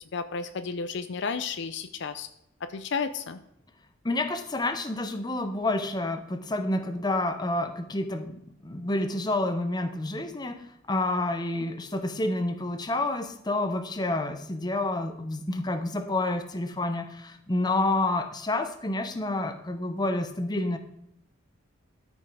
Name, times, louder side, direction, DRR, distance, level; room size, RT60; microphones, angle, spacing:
voice 1, 0.1-2.3 2.7-3.4, left 5 dB, 55° left, 10 dB, 0.5 m, -32 dB
voice 2, 4.0-20.8, left 2 dB, 20° left, 8 dB, 0.7 m, -29 dB
13.0 x 5.3 x 4.8 m, 0.78 s
head